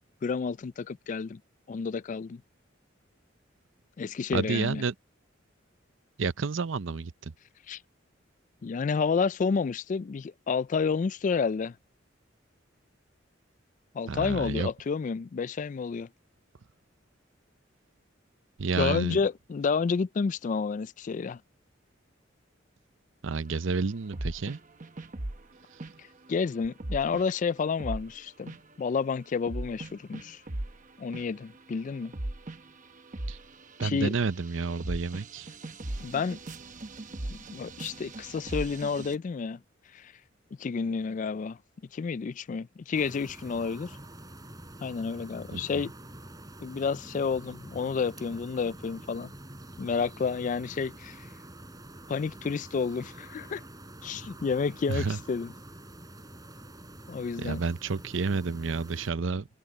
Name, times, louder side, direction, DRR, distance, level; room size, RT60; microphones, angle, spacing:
voice 1, 0.2-1.4 1.7-2.4 4.0-4.8 7.7-7.8 8.6-11.8 13.9-16.1 18.8-21.4 26.0-30.4 31.0-32.1 33.8-34.1 36.0-36.4 37.3-39.6 39.9-40.1 40.6-41.6 41.9-44.0 44.8-45.9 46.6-49.3 49.8-51.3 52.1-53.6 54.0-55.5 57.1-57.6, left 5 dB, 40° left, 0.3 m, -30 dB
voice 2, 4.3-4.9 6.2-7.3 14.1-14.7 18.6-19.2 23.2-24.6 33.3-33.4 33.8-35.5 45.5-45.8 54.9-55.2 57.4-59.6, right 4 dB, 75° right, 0.7 m, -30 dB
sound 1, 24.1-25.5 25.8-26.0 26.8-27.3 27.8-28.7 29.5-30.8 31.1-31.6 31.9-39.2, right 1 dB, 40° right, 1.0 m, -38 dB
sound 2, 42.9-59.1, right 1 dB, 20° right, 4.7 m, -47 dB
head